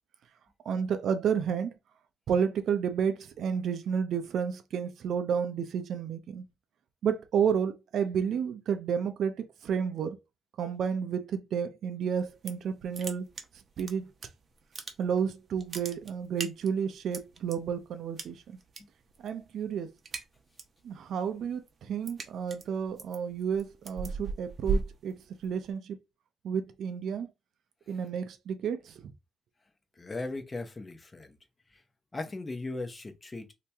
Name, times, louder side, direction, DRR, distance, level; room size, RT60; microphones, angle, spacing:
voice 1, 0.6-1.7 2.3-6.4 7.0-10.2 10.6-13.3 13.8-14.1 15.0-18.6 19.2-19.9 20.8-26.0 26.4-27.3 27.9-29.1, right 7 dB, 70° right, 0.6 m, -31 dB
sound 1, 12.2-12.7 12.9-14.3 14.6-15.3 15.5-17.6 18.2-18.8 19.1-19.4 19.7-20.8 21.2-25.7, right 4 dB, 45° right, 0.8 m, -36 dB
voice 2, 30.0-31.4 31.7-31.8 32.1-33.5, left 2 dB, 25° left, 0.9 m, -38 dB
2.9 x 2.9 x 3.4 m
cardioid pair, 90°, 0 cm